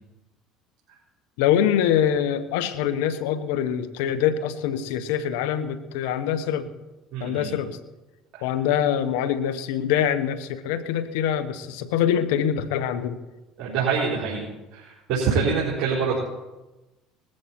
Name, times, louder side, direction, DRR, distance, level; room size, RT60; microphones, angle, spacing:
voice 1, 1.4-6.7 7.2-7.8 8.4-13.2, left 9 dB, 80° left, 12 dB, 1.2 m, -24 dB
voice 2, 7.1-7.5 8.4-8.5 13.6-14.4 14.7-16.2, right 5 dB, 65° right, -5 dB, 4.5 m, -25 dB
19.5 x 14.0 x 4.5 m, 1.1 s
supercardioid pair, 85°, 0 cm